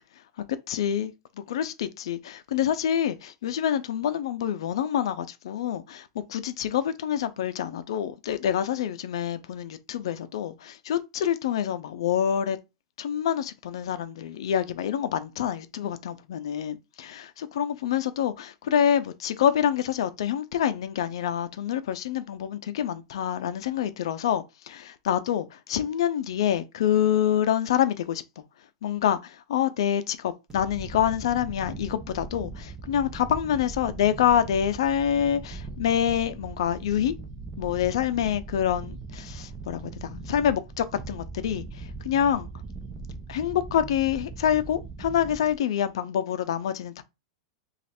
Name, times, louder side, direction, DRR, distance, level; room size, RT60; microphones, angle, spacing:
voice 1, 0.5-1.1 1.5-12.6 13.0-28.4 28.8-37.1 37.6-42.5 43.3-47.0, left 9 dB, 70° left, 0.5 m, -27 dB
sound 1, 30.5-45.6, right 4 dB, 20° right, 0.7 m, -40 dB
3.1 x 2.4 x 4.2 m
supercardioid pair, 160°, 3 cm